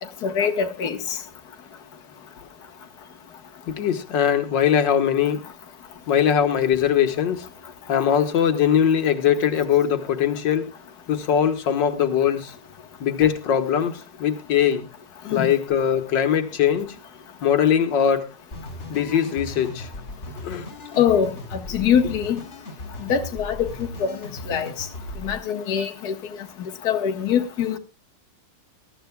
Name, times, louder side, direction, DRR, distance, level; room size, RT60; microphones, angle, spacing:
voice 1, 0.2-1.2 15.3-15.5 21.0-22.4 23.0-23.7 24.0-24.2 24.5-24.7 25.2-26.2 26.8-27.8, left 8 dB, 60° left, 1.8 m, -23 dB
voice 2, 3.7-5.4 6.1-7.5 7.9-10.7 11.1-12.5 13.0-14.9 15.3-17.0 17.4-18.3 18.9-19.9 20.4-20.7, left 8 dB, 90° left, 1.9 m, -21 dB
sound 1, 18.5-25.4, left 1 dB, 40° left, 4.7 m, -37 dB
21.5 x 12.5 x 2.3 m
omnidirectional pair, 1.9 m